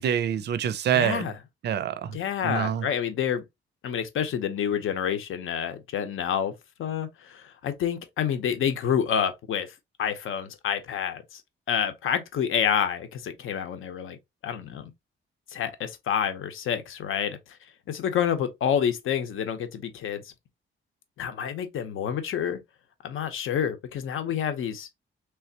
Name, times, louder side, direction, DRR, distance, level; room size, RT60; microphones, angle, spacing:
voice 1, 0.0-1.3 1.6-2.2 2.4-2.9, right 9 dB, 55° right, 0.4 m, -26 dB
voice 2, 0.9-1.3 2.1-3.4 3.8-6.5 6.8-11.4 11.7-14.2 14.4-14.9 15.5-17.4 17.9-20.2 21.2-22.6 23.0-24.9, left 8 dB, 75° left, 0.8 m, -28 dB
3.4 x 3.1 x 2.8 m
wide cardioid pair, 165°, 21 cm